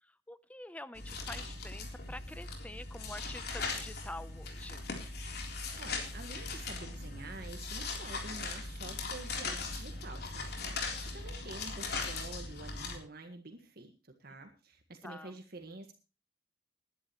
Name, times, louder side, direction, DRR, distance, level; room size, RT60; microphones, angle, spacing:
voice 1, 0.3-4.9 15.0-15.3, left 1 dB, 10° left, 15 dB, 0.7 m, -47 dB
sound 1, 1.0-13.0, left 3 dB, 60° left, 3.7 m, -39 dB
voice 2, 5.8-10.5 11.0-13.9 14.2-15.9, right 2 dB, 60° right, 5 dB, 1.7 m, -48 dB
20.0 x 11.0 x 3.1 m, 0.32 s
head